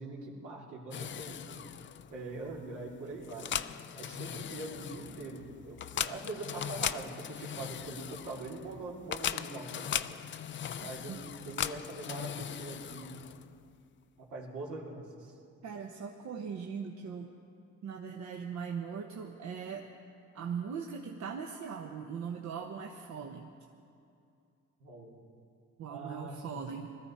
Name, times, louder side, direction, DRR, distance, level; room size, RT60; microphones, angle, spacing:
voice 1, 0.0-1.7 2.1-3.5 4.0-10.2 10.8-13.2 14.2-15.3 24.8-25.2 25.9-26.7, right 2 dB, 85° right, -3 dB, 2.6 m, -43 dB
sound 1, 0.9-13.6, left 9 dB, 40° left, 0.4 m, -39 dB
voice 2, 15.6-17.3 17.8-19.9 20.3-23.5 25.8-26.9, right 6 dB, 65° right, 2 dB, 1.0 m, -40 dB
20.5 x 13.5 x 4.3 m, 2.5 s
cardioid pair, 90°, 30 cm